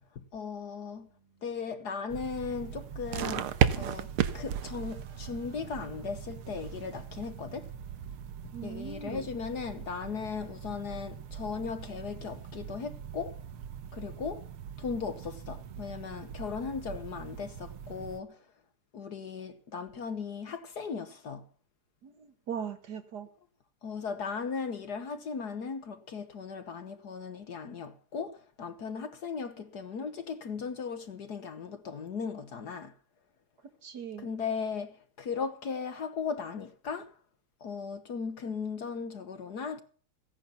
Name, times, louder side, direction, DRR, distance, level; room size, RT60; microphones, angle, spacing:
voice 1, 0.1-1.1 1.4-3.5 3.8-4.1 4.3-7.7 8.6-13.4 13.9-14.5 14.8-18.4 18.9-21.4 23.8-32.9 34.2-37.1 37.6-39.8, left 5 dB, 55° left, 1.6 m, -37 dB
Keyboard (musical), 0.9-8.2, right 5 dB, 70° right, 3.8 m, -63 dB
sound 1, 2.1-18.2, right 9 dB, 85° right, 1.9 m, -37 dB
voice 2, 8.5-9.3 22.0-23.3 33.8-34.3, right 7 dB, 50° right, 1.9 m, -39 dB
16.5 x 10.5 x 7.0 m
omnidirectional pair, 2.4 m